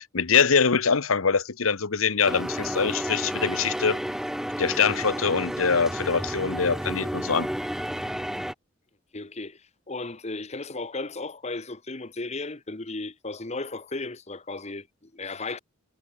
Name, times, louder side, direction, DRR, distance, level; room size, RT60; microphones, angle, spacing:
voice 1, 0.0-4.0 4.6-7.5, left 5 dB, 90° left, 1.1 m, -24 dB
sound 1, 2.2-8.5, equal, ahead, 0.6 m, -31 dB
voice 2, 9.1-15.6, left 3 dB, 35° left, 1.3 m, -35 dB
head